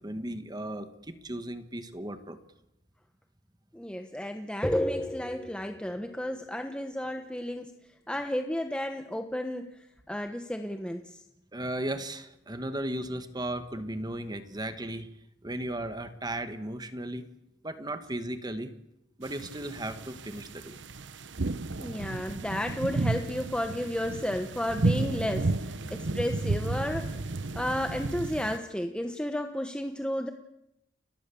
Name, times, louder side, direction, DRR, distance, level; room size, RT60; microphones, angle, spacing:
voice 1, 0.0-2.4 11.5-15.1 15.4-17.2 17.6-18.7 19.2-20.8, right 1 dB, 20° right, 9 dB, 1.5 m, -36 dB
voice 2, 3.7-7.8 8.1-11.2 21.8-30.3, left 1 dB, 5° left, 5 dB, 1.2 m, -32 dB
sound 1, 19.3-28.6, right 2 dB, 75° right, 1.1 m, -32 dB
30.0 x 22.5 x 7.1 m, 0.86 s
head